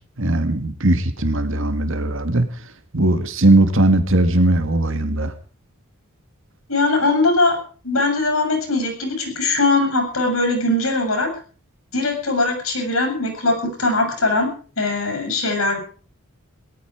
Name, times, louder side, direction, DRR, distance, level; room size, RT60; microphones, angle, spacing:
voice 1, 0.2-2.5 2.9-5.3, right 1 dB, 65° right, 9 dB, 2.0 m, -18 dB
voice 2, 6.7-7.6 7.8-11.3 11.9-14.5 14.8-15.8, left 2 dB, 80° left, 5 dB, 8.0 m, -20 dB
18.5 x 14.0 x 5.1 m, 0.41 s
head